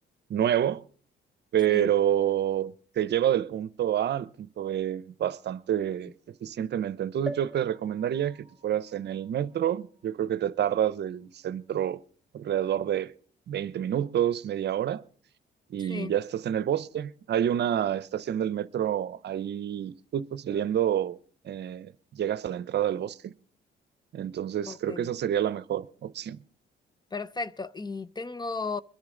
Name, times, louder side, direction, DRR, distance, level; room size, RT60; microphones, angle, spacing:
voice 1, 0.3-0.8 1.5-6.1 6.4-8.4 8.6-12.0 12.3-13.1 13.5-15.0 15.7-21.2 21.4-23.3 24.1-26.4, right 10 dB, 60° right, 0.7 m, -28 dB
sound 1, 7.3-10.9 11.5-11.6 11.8-11.9, equal, 5° right, 1.7 m, -44 dB
voice 2, 15.8-16.2 24.7-25.1 27.1-28.8, left 4 dB, 20° left, 0.5 m, -35 dB
23.0 x 10.5 x 3.8 m
cardioid pair, 90°, 20 cm